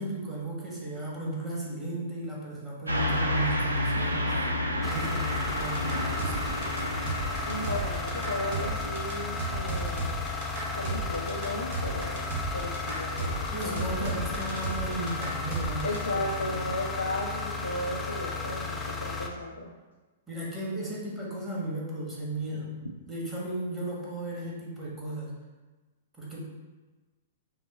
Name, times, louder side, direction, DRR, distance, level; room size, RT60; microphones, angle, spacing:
voice 1, 0.0-4.3 4.8-6.4 13.5-16.7 20.3-22.7 23.1-25.3 26.2-26.4, right 1 dB, 10° right, -5 dB, 1.5 m, -35 dB
Car passing by / Truck, 2.9-8.8, left 1 dB, 85° right, 0.5 m, -30 dB
sound 1, 4.8-19.3, left 4 dB, 10° left, 0.5 m, -34 dB
sound 2, 5.5-16.0, right 3 dB, 50° right, 0.9 m, -35 dB
voice 2, 7.5-10.1 10.7-14.3 15.8-19.7, left 1 dB, 85° left, -3 dB, 0.5 m, -35 dB
5.5 x 2.1 x 4.2 m, 1.2 s
figure-of-eight pair, 105°, 0 cm